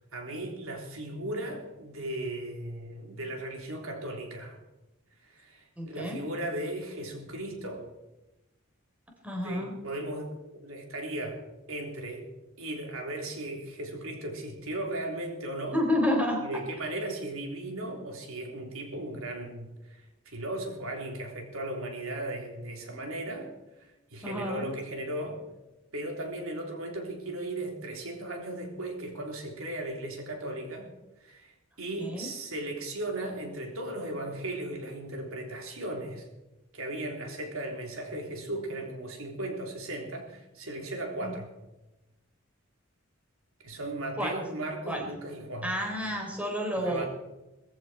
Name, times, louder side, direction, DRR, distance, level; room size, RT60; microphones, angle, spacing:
voice 1, 0.0-4.6 5.2-7.9 9.4-11.4 11.7-12.3 12.6-15.8 16.4-23.5 23.8-25.4 25.9-30.9 31.2-36.3 36.7-41.5 43.6-45.8 46.7-47.1, right 1 dB, 80° right, 1 dB, 3.8 m, -36 dB
voice 2, 5.8-6.2 9.2-9.7 15.7-16.4 24.2-24.7 32.0-32.3 41.2-41.3 44.2-44.3 44.9-45.0 45.6-47.1, left 1 dB, 5° right, 0 dB, 4.0 m, -30 dB
20.0 x 15.0 x 4.6 m, 0.99 s
head